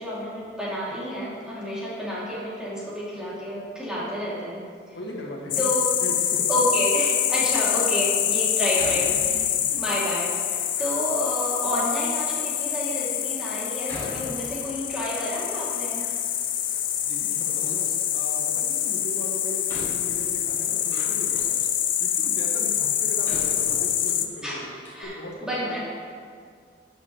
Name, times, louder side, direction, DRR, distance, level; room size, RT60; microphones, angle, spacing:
voice 1, 0.0-4.6 5.6-6.0 6.5-9.4 9.8-10.3 10.8-16.0 24.4-24.6 24.9-25.1 25.4-25.8, equal, 5° right, -8 dB, 2.7 m, -29 dB
voice 2, 4.9-5.5 6.0-6.5 9.6-9.8 17.0-21.6 22.0-24.7 25.0-25.8, left 1 dB, 75° left, -2 dB, 1.9 m, -38 dB
sound 1, 5.5-24.3, left 10 dB, 45° left, 0.6 m, -26 dB
Door, 7.4-7.9 8.7-9.7 10.4-11.0 11.8-11.9 12.6-12.7 13.8-15.0 15.3-16.4 16.7-17.5 18.9-19.0 19.7-21.6 22.3-22.4 23.2-24.3 24.6-24.7 24.8-25.0, left 1 dB, 15° left, 2.8 m, -42 dB
13.0 x 9.0 x 3.2 m, 2.1 s
head